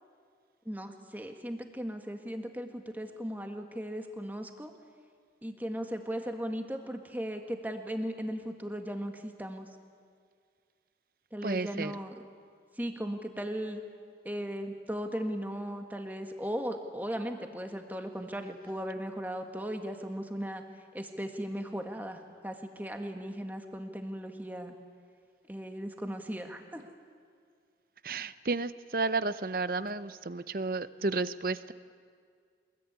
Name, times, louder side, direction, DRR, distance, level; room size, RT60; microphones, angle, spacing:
voice 1, 0.7-4.7 5.4-9.7 11.3-12.1 12.8-13.8 14.3-20.6 20.9-24.8 25.5-26.9, equal, 10° right, 5 dB, 1.8 m, -37 dB
voice 2, 11.4-11.9 28.0-31.7, right 3 dB, 55° right, 14 dB, 0.7 m, -32 dB
24.0 x 21.0 x 9.6 m, 2.1 s
head